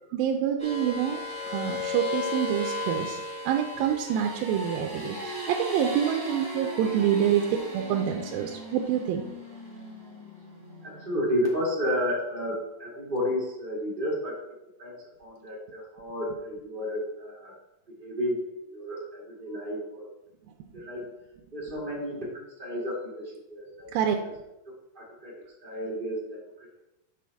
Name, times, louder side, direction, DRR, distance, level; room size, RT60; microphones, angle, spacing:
voice 1, 0.1-1.2 1.5-3.2 3.5-9.2 23.9-24.2 25.6-25.7, right 9 dB, 85° right, 3 dB, 2.3 m, -27 dB
sound 1, 0.6-11.4, left 2 dB, 5° left, 0.7 m, -36 dB
voice 2, 10.8-14.4 14.8-14.9 15.2-17.5 17.9-18.4 18.7-20.1 20.7-21.0 21.5-23.9 24.2-24.3 24.9-25.3 25.6-26.7, equal, 20° right, -6 dB, 1.4 m, -32 dB
6.2 x 5.8 x 3.4 m, 0.92 s
omnidirectional pair, 4.1 m